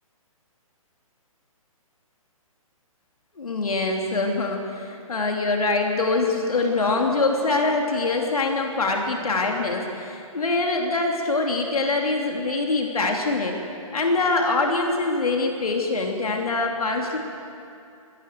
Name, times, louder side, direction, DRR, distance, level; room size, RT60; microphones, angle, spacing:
voice 1, 3.4-13.6 13.9-17.2, left 3 dB, 75° left, 1 dB, 3.1 m, -24 dB
22.0 x 17.0 x 7.7 m, 2.6 s
hypercardioid pair, 140°, 18 cm